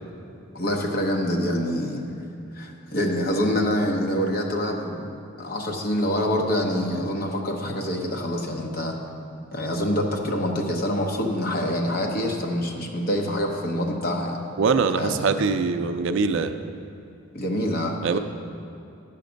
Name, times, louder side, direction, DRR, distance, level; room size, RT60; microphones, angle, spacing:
voice 1, 0.5-2.0 2.5-5.1 5.4-9.0 9.5-14.4 15.0-15.4 17.3-18.0, equal, 45° left, 1 dB, 1.0 m, -26 dB
voice 2, 14.6-16.6 18.0-18.2, right 4 dB, 60° right, 9 dB, 0.4 m, -23 dB
11.0 x 5.8 x 5.1 m, 2.7 s
head